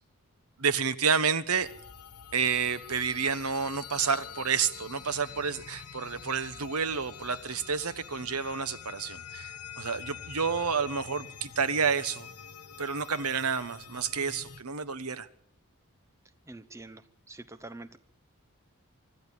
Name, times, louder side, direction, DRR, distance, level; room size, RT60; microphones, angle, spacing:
voice 1, 0.6-1.7 2.3-12.3 12.8-15.3, right 6 dB, 85° right, 1.2 m, -30 dB
sound 1, 1.6-14.6, left 7 dB, 90° left, 1.5 m, -46 dB
voice 2, 16.5-18.0, right 2 dB, 15° right, 0.8 m, -46 dB
25.0 x 13.5 x 8.9 m
head